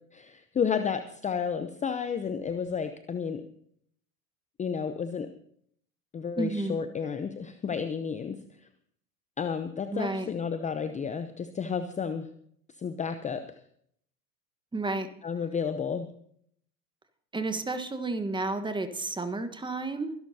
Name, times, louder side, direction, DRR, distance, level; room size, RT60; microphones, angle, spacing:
voice 1, 0.1-3.4 4.6-5.3 6.1-8.4 9.4-12.3 12.8-13.4 15.2-16.1, left 6 dB, 15° left, 10 dB, 0.7 m, -31 dB
voice 2, 6.3-6.8 9.9-10.3 14.7-15.1 17.3-20.1, right 2 dB, 10° right, 9 dB, 1.3 m, -31 dB
23.5 x 11.5 x 2.8 m, 0.66 s
hypercardioid pair, 85°, 48 cm